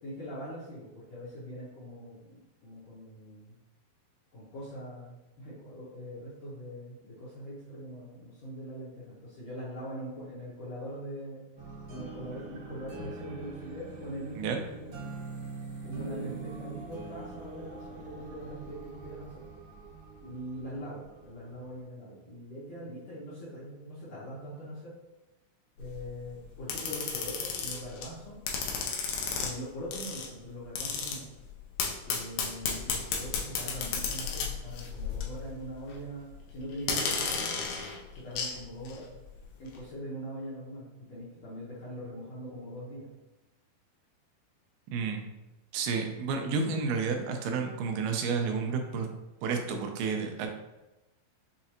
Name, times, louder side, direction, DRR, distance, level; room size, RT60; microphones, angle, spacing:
voice 1, 0.0-3.6 4.3-11.4 11.9-15.1 15.8-19.4 20.2-24.9 25.8-28.4 29.4-31.3 32.0-37.6 38.1-39.0 39.6-43.1, equal, 70° left, -9 dB, 1.7 m, -42 dB
sound 1, 11.6-21.8, right 4 dB, 55° right, 1.9 m, -44 dB
sound 2, 25.8-26.1 26.7-28.0 28.5-29.5 29.9-30.3 30.8-31.2 31.8-35.4 35.7-35.9 36.8-38.5 38.8-39.0, left 5 dB, 90° left, 1.9 m, -33 dB
voice 2, 44.9-45.3 45.7-49.1 49.4-50.5, right 5 dB, 85° right, 4 dB, 2.5 m, -31 dB
6.5 x 2.4 x 2.9 m, 1.0 s
omnidirectional pair, 4.4 m